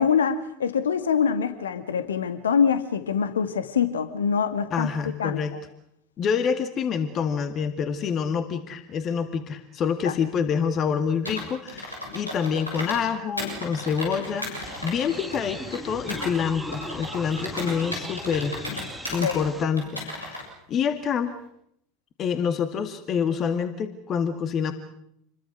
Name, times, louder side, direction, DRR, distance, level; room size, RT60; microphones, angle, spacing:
voice 1, 0.0-4.9 5.2-5.6 10.0-10.1 19.2-19.4, left 7 dB, 70° left, 10 dB, 2.0 m, -24 dB
voice 2, 4.7-5.5 6.2-18.6 19.1-20.4 20.7-21.3 22.2-24.7, left 6 dB, 35° left, 9 dB, 2.1 m, -27 dB
Computer keyboard, 11.2-13.1 13.4-16.3 16.7-19.4 19.8-20.4, left 1 dB, 90° left, 7.3 m, -35 dB
sound 1, 14.6-19.6, equal, ahead, 3.2 m, -38 dB
29.0 x 22.0 x 6.3 m, 0.73 s
figure-of-eight pair, 80°, 0 cm